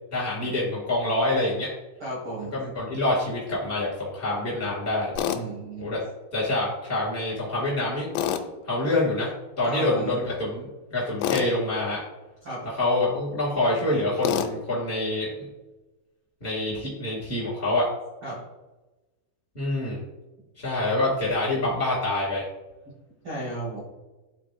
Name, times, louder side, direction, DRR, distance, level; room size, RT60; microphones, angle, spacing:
voice 1, 0.1-1.7 2.5-5.1 5.8-6.0 6.3-8.1 8.6-9.3 9.6-12.0 12.6-15.5 16.4-17.8 19.5-20.0 20.6-22.5, left 2 dB, 45° left, -6 dB, 0.7 m, -26 dB
voice 2, 2.0-2.5 5.3-5.9 9.6-10.1 12.4-12.6 18.2-18.4 23.2-23.8, right 2 dB, 80° right, -8 dB, 1.2 m, -33 dB
Tools, 5.2-5.4 8.2-8.5 11.2-11.5 14.2-14.5, left 9 dB, 80° left, 2.7 m, -26 dB
12.0 x 4.0 x 2.6 m, 1.1 s
omnidirectional pair, 5.3 m